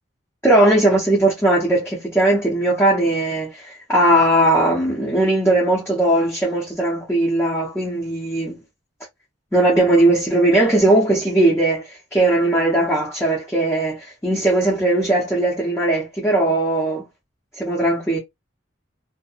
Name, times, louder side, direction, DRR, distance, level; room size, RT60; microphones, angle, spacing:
voice 1, 0.4-8.6 9.5-17.1 17.6-18.2, right 1 dB, 10° left, 0.6 m, -18 dB
2.6 x 2.1 x 2.4 m
head